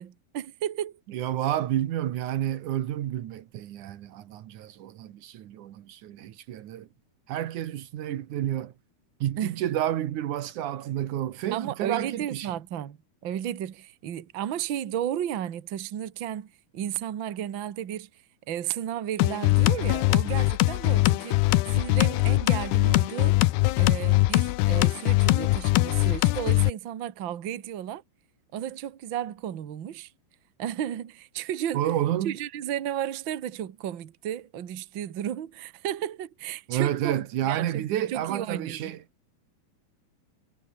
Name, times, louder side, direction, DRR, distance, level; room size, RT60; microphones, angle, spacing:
voice 1, 0.0-1.0 9.4-9.6 11.5-13.0 13.2-16.5 16.7-18.1 18.5-21.4 21.7-23.4 23.8-28.0 28.5-30.1 30.6-31.9 32.2-39.0, right 10 dB, 90° right, 1.0 m, -33 dB
voice 2, 1.1-6.9 7.3-8.7 9.2-12.5 31.7-32.4 36.7-39.0, right 12 dB, 65° right, 2.4 m, -30 dB
sound 1, 19.2-26.7, left 18 dB, 90° left, 2.9 m, -22 dB
omnidirectional pair, 4.5 m